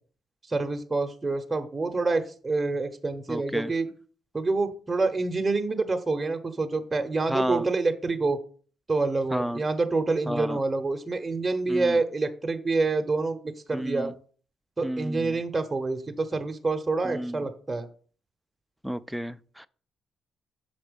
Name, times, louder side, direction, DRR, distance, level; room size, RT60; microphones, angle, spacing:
voice 1, 0.5-3.9 4.3-8.4 8.9-14.1 14.8-17.9, right 3 dB, 20° right, 0.8 m, -27 dB
voice 2, 3.3-3.7 7.3-7.7 9.3-9.6 10.3-10.6 11.7-12.0 13.7-14.1 14.8-15.4 17.0-17.5 18.8-19.7, equal, ahead, 0.3 m, -31 dB
6.1 x 4.2 x 5.1 m
cardioid pair, 90°, 0 cm